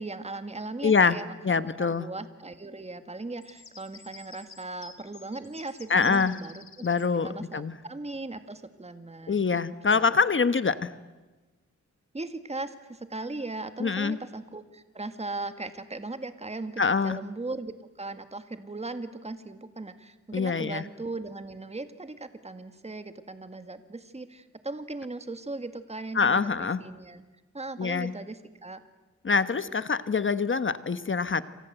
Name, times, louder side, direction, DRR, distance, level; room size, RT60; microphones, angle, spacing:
voice 1, 0.0-6.8 7.2-10.2 12.1-27.2 27.5-28.8, right 2 dB, 20° right, 10 dB, 1.8 m, -38 dB
voice 2, 0.8-1.2 1.4-2.1 5.9-6.4 6.8-7.7 9.3-10.9 13.8-14.2 16.8-17.2 20.3-20.8 26.1-26.8 27.8-28.1 29.2-31.4, left 5 dB, 40° left, 13 dB, 1.2 m, -25 dB
sound 1, 3.4-7.1, left 5 dB, 65° left, 3.1 m, -50 dB
28.5 x 26.0 x 8.1 m, 1.2 s
wide cardioid pair, 80°, 30 cm